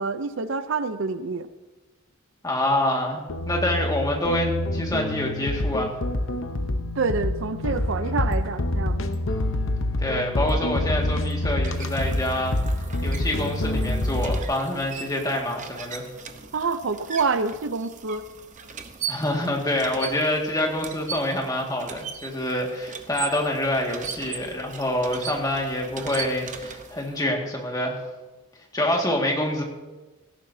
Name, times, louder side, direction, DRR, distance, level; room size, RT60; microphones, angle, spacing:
voice 1, 0.0-1.5 7.0-9.1 16.5-18.2, right 4 dB, 60° right, 11 dB, 0.5 m, -27 dB
voice 2, 2.4-5.9 10.0-12.6 13.0-16.0 19.1-28.0 28.7-29.6, left 1 dB, 15° left, 0 dB, 1.9 m, -26 dB
sound 1, 3.3-14.4, left 1 dB, 60° left, 0.8 m, -27 dB
sound 2, 11.0-27.2, right 6 dB, 35° right, 0.8 m, -39 dB
17.5 x 13.5 x 2.7 m, 1.2 s
head